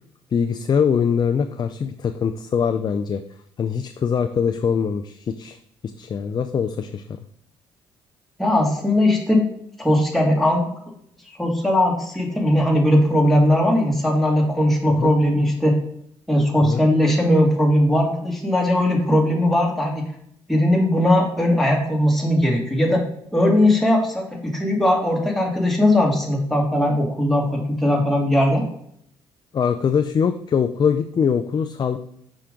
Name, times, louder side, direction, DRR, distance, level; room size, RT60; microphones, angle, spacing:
voice 1, 0.3-3.2 3.6-5.6 5.8-7.2 15.0-15.1 16.6-16.8 29.5-32.0, left 7 dB, 40° left, 9 dB, 0.4 m, -22 dB
voice 2, 8.4-9.5 9.8-10.7 11.4-15.8 16.3-20.1 20.5-23.0 23.3-28.6, left 1 dB, ahead, -1 dB, 1.9 m, -19 dB
5.6 x 5.1 x 3.7 m, 0.71 s
supercardioid pair, 65°, 11 cm